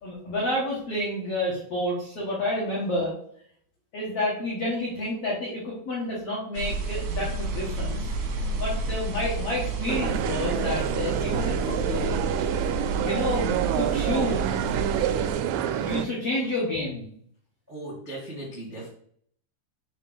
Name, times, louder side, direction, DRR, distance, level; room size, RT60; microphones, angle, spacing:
voice 1, 0.0-3.1 3.9-8.1 8.6-12.2 12.9-14.5 15.6-17.1, left 1 dB, 80° left, -5 dB, 1.3 m, -29 dB
sound 1, 6.5-15.3, right 2 dB, 75° right, 1.9 m, -31 dB
sound 2, 9.9-16.1, right 10 dB, 90° right, 3.0 m, -27 dB
voice 2, 17.7-18.9, right 1 dB, 40° right, -7 dB, 0.6 m, -38 dB
6.4 x 3.6 x 5.4 m, 0.64 s
omnidirectional pair, 5.3 m